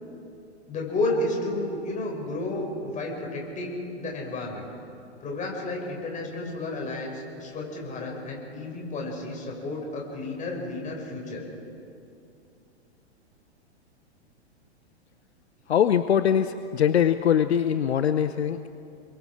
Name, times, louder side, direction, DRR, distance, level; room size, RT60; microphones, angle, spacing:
voice 1, 0.7-4.7 5.2-11.4, left 2 dB, 20° left, 0 dB, 5.9 m, -32 dB
voice 2, 15.7-18.7, left 9 dB, 70° left, 11 dB, 0.8 m, -22 dB
29.5 x 22.5 x 4.9 m, 2.6 s
figure-of-eight pair, 105°, 33 cm